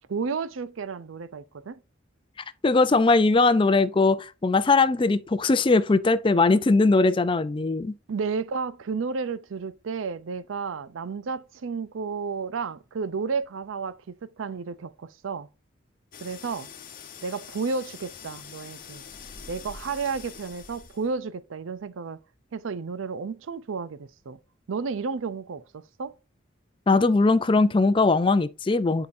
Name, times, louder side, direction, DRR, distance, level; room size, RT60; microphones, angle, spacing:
voice 1, 0.0-1.8 8.1-15.5 16.2-16.7 17.2-19.0 19.5-22.2 22.5-24.4 24.7-26.1, right 5 dB, 80° right, 0.5 m, -32 dB
voice 2, 2.6-7.9 26.9-29.1, left 3 dB, 25° left, 0.4 m, -20 dB
sound 1, 16.1-21.2, left 6 dB, 45° left, 0.9 m, -44 dB
9.4 x 4.9 x 2.6 m
head